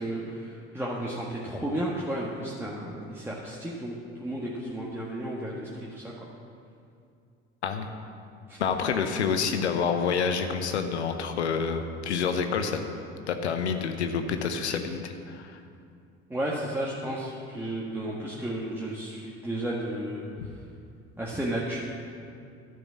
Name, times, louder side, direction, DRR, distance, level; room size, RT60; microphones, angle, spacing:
voice 1, 0.0-3.9 4.2-6.0 8.5-8.6 16.3-20.2 21.2-21.8, right 1 dB, 5° right, -5 dB, 1.6 m, -33 dB
voice 2, 8.6-12.8 13.3-15.6, left 6 dB, 85° left, 7 dB, 0.8 m, -28 dB
12.0 x 6.0 x 7.4 m, 2.5 s
hypercardioid pair, 60°, 33 cm